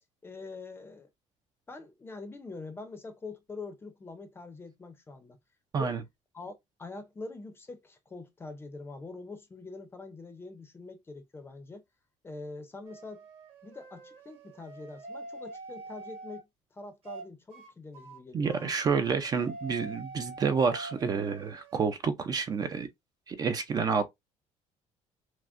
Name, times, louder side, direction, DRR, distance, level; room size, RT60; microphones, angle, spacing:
voice 1, 0.2-1.1 1.7-5.4 5.7-6.0 6.3-11.8 12.2-13.2 13.6-18.7, left 3 dB, 20° left, 0.6 m, -44 dB
sound 1, 12.8-16.4 17.0-17.3 17.5-17.7 17.9-21.9, right 2 dB, 50° right, 1.6 m, -46 dB
voice 2, 18.3-22.9 23.3-24.0, right 5 dB, 30° right, 0.5 m, -29 dB
5.8 x 2.1 x 2.5 m
cardioid pair, 165°, 13 cm